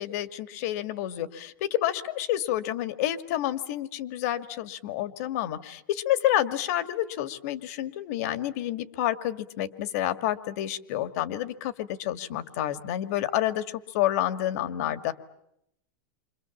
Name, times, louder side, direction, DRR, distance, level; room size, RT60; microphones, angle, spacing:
voice 1, 0.0-13.6 13.9-15.1, left 13 dB, 50° left, 11 dB, 1.9 m, -29 dB
29.5 x 26.0 x 7.3 m, 0.77 s
supercardioid pair, 170°, 10 cm